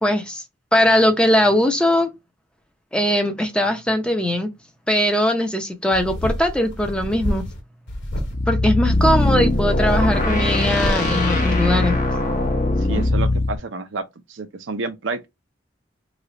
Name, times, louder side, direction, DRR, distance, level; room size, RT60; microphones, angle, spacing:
voice 1, 0.0-0.4 0.7-2.1 2.9-4.5 4.9-7.5 8.5-12.0, left 1 dB, 5° left, 0.6 m, -20 dB
sound 1, 5.9-7.6 7.9-8.3 8.9-11.1, equal, 70° left, 1.2 m, -29 dB
sound 2, 8.3-13.6, left 2 dB, 40° left, 0.9 m, -20 dB
voice 2, 12.8-15.3, right 3 dB, 85° right, 0.6 m, -30 dB
3.1 x 2.4 x 3.9 m
head